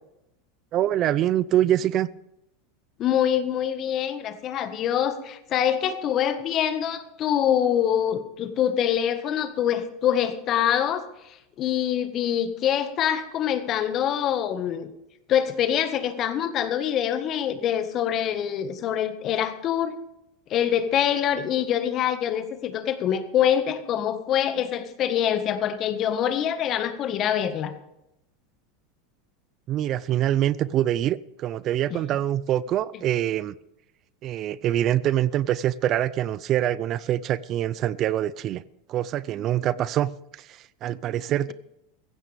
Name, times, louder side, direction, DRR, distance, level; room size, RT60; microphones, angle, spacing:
voice 1, 0.7-2.1 29.7-33.5 34.2-38.6 38.9-40.1 40.4-41.5, right 12 dB, 45° right, 0.5 m, -25 dB
voice 2, 3.0-14.9 15.3-20.0 20.5-27.7 31.9-32.0, left 9 dB, 40° left, 1.6 m, -25 dB
16.0 x 15.0 x 3.5 m
hypercardioid pair, 110°, 0 cm